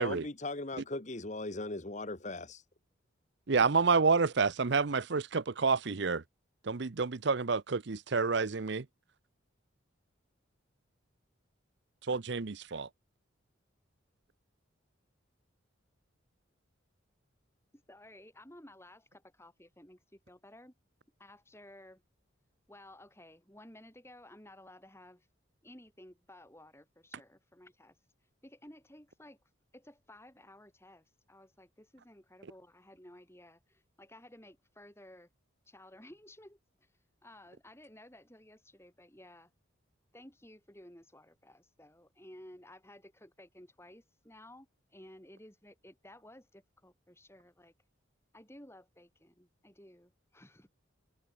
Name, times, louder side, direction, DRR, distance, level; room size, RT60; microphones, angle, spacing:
voice 1, 0.0-2.6, left 2 dB, 35° left, 1.4 m, -38 dB
voice 2, 3.5-6.2 6.7-8.8 12.1-12.9, right 4 dB, 60° right, 0.7 m, -29 dB
voice 3, 17.7-20.7 21.2-22.0 22.7-25.3 25.6-28.0 28.4-29.4 29.7-35.3 35.7-36.9 37.2-39.5 40.1-47.7 48.3-50.7, left 1 dB, 15° left, 8.0 m, -55 dB
head